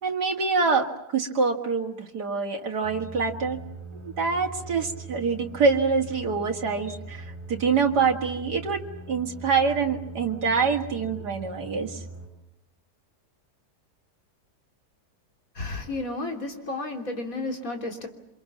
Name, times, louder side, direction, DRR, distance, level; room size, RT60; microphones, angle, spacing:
voice 1, 0.0-0.8 1.1-3.6 4.0-8.8 9.1-12.0, right 5 dB, 80° right, 1 dB, 2.6 m, -25 dB
sound 1, 2.8-12.3, right 2 dB, 10° left, 6.4 m, -41 dB
voice 2, 15.5-18.1, left 2 dB, 55° left, 4 dB, 3.7 m, -32 dB
28.5 x 25.5 x 7.3 m, 0.79 s
omnidirectional pair, 1.7 m